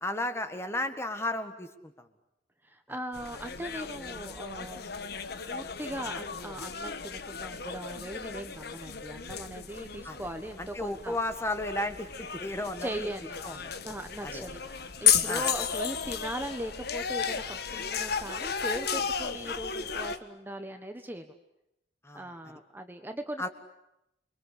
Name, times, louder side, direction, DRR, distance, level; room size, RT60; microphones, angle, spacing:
voice 1, 0.0-2.1 10.1-10.2 10.6-13.1 13.4-13.6 14.2-14.5 15.3-15.4 22.0-22.3 23.4-23.5, left 1 dB, 15° left, 8 dB, 1.7 m, -34 dB
voice 2, 2.6-5.2 5.5-11.2 12.8-13.5 13.8-21.3 22.1-23.5, right 1 dB, 10° right, 6 dB, 1.3 m, -39 dB
sound 1, 3.1-20.2, left 7 dB, 60° left, 1.4 m, -33 dB
29.0 x 22.5 x 8.5 m, 0.85 s
head